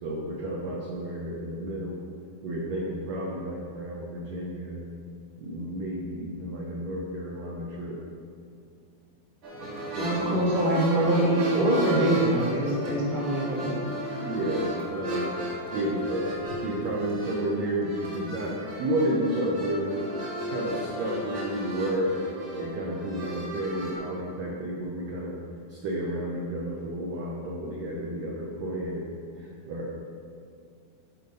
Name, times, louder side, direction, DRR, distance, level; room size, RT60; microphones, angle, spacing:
voice 1, 0.0-2.0 2.4-4.8 5.4-8.0 9.5-10.5 14.2-15.3 15.7-16.2 16.6-20.0 20.5-22.1 22.5-25.4 25.7-29.1 29.4-29.9, right 1 dB, 75° right, -3 dB, 1.6 m, -31 dB
sound 1, 9.4-23.9, right 1 dB, 45° right, 1.7 m, -35 dB
voice 2, 10.0-13.8, right 1 dB, 20° right, -5 dB, 1.3 m, -24 dB
12.5 x 4.4 x 5.3 m, 2.4 s
omnidirectional pair, 4.3 m